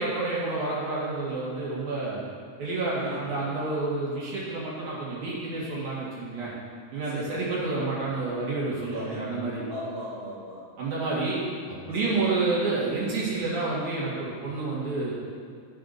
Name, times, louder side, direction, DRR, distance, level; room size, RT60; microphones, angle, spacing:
voice 1, 0.0-2.2 2.6-6.5 6.9-9.6 10.8-11.4 11.7-15.1, right 3 dB, 55° right, -7 dB, 2.6 m, -29 dB
voice 2, 3.0-3.7 7.0-7.5 8.9-9.2 9.7-10.7 12.0-12.4, equal, 55° left, -9 dB, 1.3 m, -39 dB
14.0 x 5.7 x 3.9 m, 2.2 s
omnidirectional pair, 4.8 m